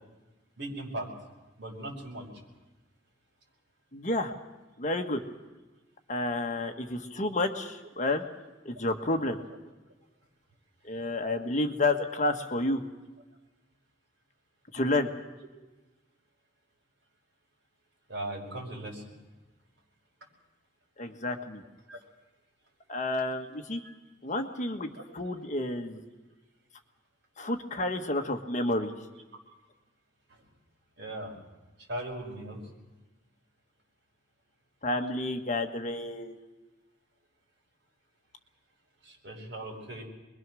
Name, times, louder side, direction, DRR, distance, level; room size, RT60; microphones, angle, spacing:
voice 1, 0.6-1.1 1.6-2.3 8.0-8.1 18.1-19.1 21.9-22.0 23.7-23.9 24.9-25.0 25.8-26.0 31.0-31.4 31.9-32.6 39.0-40.0, right 1 dB, 65° right, 0 dB, 5.5 m, -38 dB
voice 2, 3.9-4.3 4.8-5.2 6.1-8.2 8.6-9.4 10.8-12.8 14.7-15.1 21.0-21.6 22.9-23.8 24.2-26.0 27.4-28.9 34.8-36.4, left 2 dB, 40° left, 5 dB, 1.5 m, -30 dB
25.0 x 22.0 x 6.3 m, 1.1 s
head